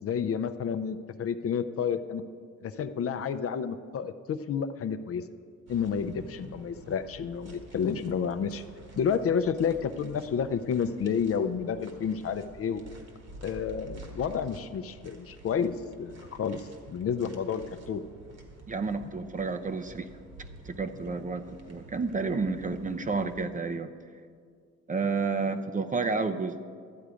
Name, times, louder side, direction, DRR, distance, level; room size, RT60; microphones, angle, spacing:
voice 1, 0.0-2.2 2.6-5.2 5.7-8.6 9.0-12.8 13.4-18.0, left 7 dB, 50° left, 10 dB, 0.6 m, -30 dB
sound 1, 5.7-23.3, right 2 dB, 55° right, 1.8 m, -49 dB
voice 2, 18.7-20.1 20.7-23.9 24.9-26.6, right 4 dB, 25° right, 8 dB, 0.6 m, -30 dB
12.5 x 8.1 x 5.0 m, 2.1 s
cardioid pair, 90°, 30 cm